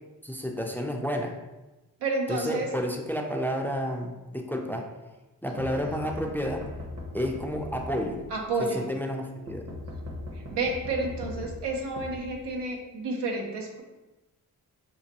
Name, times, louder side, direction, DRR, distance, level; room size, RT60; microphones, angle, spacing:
voice 1, 0.2-1.4 2.3-4.9 5.4-6.7 7.1-8.2 8.6-9.7, equal, 5° left, 2 dB, 0.4 m, -30 dB
voice 2, 2.0-2.7 5.9-6.0 8.3-8.9 10.3-13.8, right 3 dB, 90° right, 1 dB, 0.7 m, -30 dB
sound 1, 5.6-8.5 9.5-12.8, left 1 dB, 40° right, 0.9 m, -40 dB
5.2 x 2.2 x 2.9 m, 1.1 s
cardioid pair, 50°, 40 cm